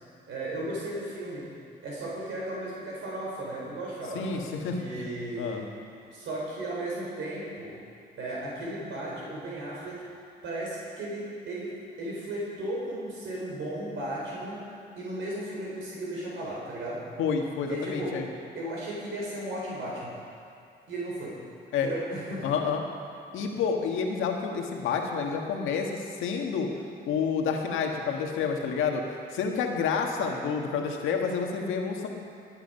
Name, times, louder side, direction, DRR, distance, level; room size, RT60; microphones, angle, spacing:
voice 1, 0.3-1.5 1.8-4.4 4.8-5.7 6.1-7.8 8.2-10.0 10.4-14.6 15.0-17.1 17.7-20.2 20.9-21.4 21.8-22.5 30.2-30.4, right 1 dB, 75° right, -5 dB, 3.9 m, -35 dB
voice 2, 4.1-5.0 5.4-5.6 17.2-18.2 21.7-21.9 22.4-22.8 23.3-26.7 27.1-29.0 29.3-32.1, left 6 dB, 90° left, 2 dB, 1.6 m, -29 dB
19.0 x 8.9 x 5.5 m, 2.6 s
cardioid pair, 90°, 20 cm